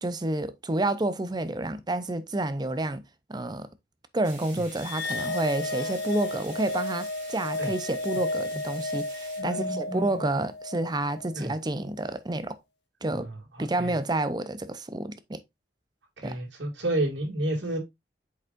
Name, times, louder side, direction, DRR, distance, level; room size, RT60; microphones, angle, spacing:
voice 1, 0.0-3.0 3.3-3.7 4.1-12.6 13.0-13.3 13.6-15.4 16.2-16.4, right 2 dB, 25° right, 0.6 m, -29 dB
sound 1, 4.2-9.4, right 3 dB, 45° right, 3.3 m, -47 dB
sound 2, 4.8-11.4, left 2 dB, 70° left, 1.2 m, -33 dB
voice 2, 9.4-10.2 11.3-11.5 13.1-13.9 16.2-17.8, right 1 dB, 90° right, 2.3 m, -31 dB
8.0 x 5.2 x 2.5 m
head